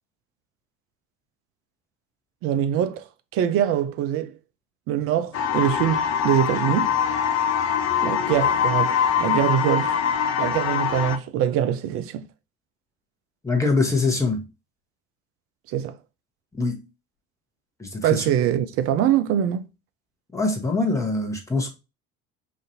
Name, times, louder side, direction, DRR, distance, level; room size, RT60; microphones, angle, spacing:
voice 1, 2.4-3.0 3.3-4.3 4.9-6.9 8.0-10.0 10.4-12.2 15.7-16.0 18.0-19.7, right 10 dB, 35° right, 0.4 m, -23 dB
sound 1, 5.3-11.2, left 8 dB, 40° left, 0.6 m, -23 dB
voice 2, 13.4-14.4 16.6-16.8 17.8-18.3 20.3-21.7, left 3 dB, 5° left, 1.0 m, -23 dB
4.9 x 2.6 x 2.7 m
figure-of-eight pair, 55°, 41 cm